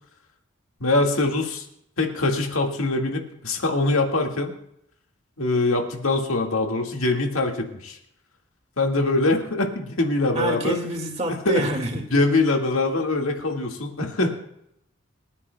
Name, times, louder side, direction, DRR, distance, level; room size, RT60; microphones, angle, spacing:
voice 1, 0.8-1.6 2.0-4.5 5.4-8.0 8.8-10.8 11.3-11.7 12.1-14.3, left 2 dB, 85° left, 2 dB, 1.9 m, -23 dB
voice 2, 10.4-12.1, right 1 dB, 30° right, 3 dB, 2.0 m, -27 dB
28.0 x 9.7 x 2.3 m, 0.76 s
head